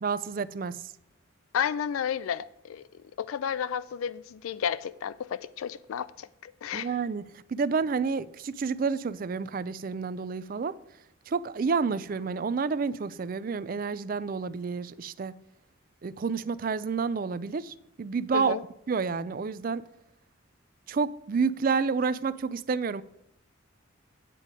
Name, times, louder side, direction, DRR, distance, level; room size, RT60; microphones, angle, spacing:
voice 1, 0.0-0.8 6.7-10.8 11.3-15.4 16.0-18.6 18.9-19.8 20.9-23.0, right 5 dB, 45° right, 0.3 m, -29 dB
voice 2, 1.5-2.8 3.2-6.9 18.3-18.6, left 8 dB, 85° left, 0.3 m, -32 dB
9.2 x 7.4 x 5.0 m
head